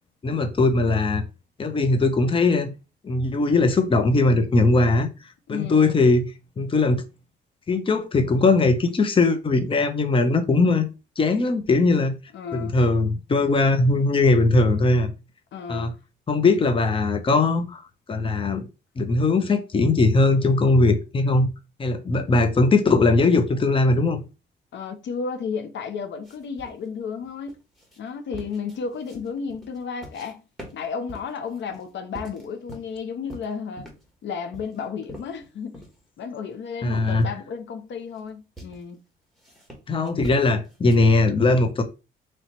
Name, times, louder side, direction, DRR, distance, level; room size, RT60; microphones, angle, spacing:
voice 1, 0.2-1.2 1.6-2.7 3.0-5.1 5.5-6.2 6.6-7.0 7.7-10.9 11.2-12.1 12.5-15.1 15.7-15.9 16.3-17.8 18.1-18.6 19.0-21.5 21.8-24.2 36.8-37.3 39.9-41.8, left 3 dB, 25° left, 0.7 m, -20 dB
voice 2, 5.5-6.0 12.3-12.8 15.5-15.9 24.7-27.6 28.0-30.4 30.7-33.9 34.2-35.8 36.2-39.0, left 6 dB, 65° left, 0.8 m, -33 dB
sound 1, 26.2-30.3 30.6-33.0 33.3-34.1 34.5-36.0 36.4-36.5 37.1-37.4 37.9-38.2 38.6-38.8 39.4-41.0, right 1 dB, ahead, 1.6 m, -44 dB
3.1 x 2.9 x 4.3 m
cardioid pair, 90°, 20 cm